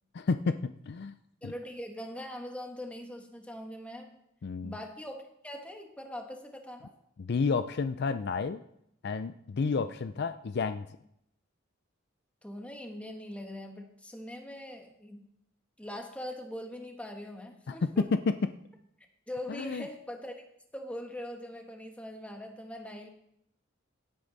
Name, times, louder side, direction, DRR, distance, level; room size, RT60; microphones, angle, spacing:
voice 1, 0.1-1.1 1.4-1.5 4.4-4.7 7.2-8.6 9.0-10.9 17.7-18.5 19.5-19.9, left 4 dB, 55° left, 11 dB, 0.4 m, -30 dB
voice 2, 1.4-4.1 4.6-6.9 12.4-15.3 15.8-18.0 19.3-20.4 20.7-23.1, left 1 dB, 5° left, 3 dB, 1.5 m, -42 dB
16.0 x 8.7 x 4.0 m, 0.75 s
head